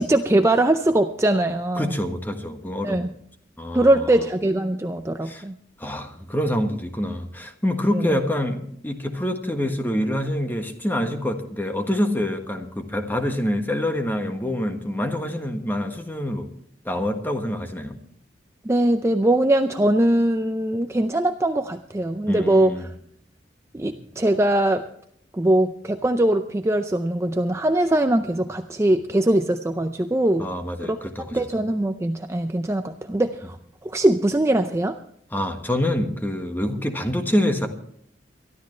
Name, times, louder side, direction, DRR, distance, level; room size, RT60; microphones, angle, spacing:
voice 1, 0.0-1.9 2.8-3.1 3.7-5.5 7.9-8.2 18.6-22.9 23.7-24.8 25.3-30.5 30.8-31.0 31.3-33.6 33.8-35.0, right 1 dB, 15° right, 7 dB, 0.5 m, -21 dB
voice 2, 1.7-3.1 3.6-4.3 5.2-5.4 5.8-16.5 16.8-18.0 22.3-22.9 30.4-31.5 35.3-37.7, left 1 dB, 10° left, 5 dB, 1.5 m, -26 dB
23.0 x 12.5 x 3.2 m, 0.65 s
head